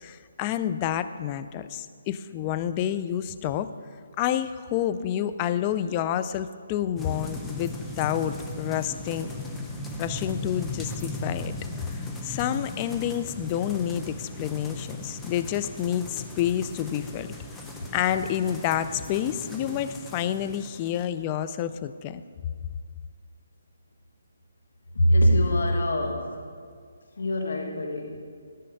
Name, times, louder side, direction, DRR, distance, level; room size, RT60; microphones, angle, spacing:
voice 1, 0.0-3.7 4.2-9.3 10.0-11.6 11.9-17.3 17.9-22.2, left 10 dB, 25° left, 12 dB, 0.4 m, -29 dB
sound 1, 7.0-21.1, left 2 dB, 5° left, 0.8 m, -37 dB
voice 2, 24.9-26.3 27.2-28.2, equal, 75° left, 2 dB, 1.2 m, -23 dB
12.5 x 5.6 x 5.4 m, 2.1 s
figure-of-eight pair, 150°, 0 cm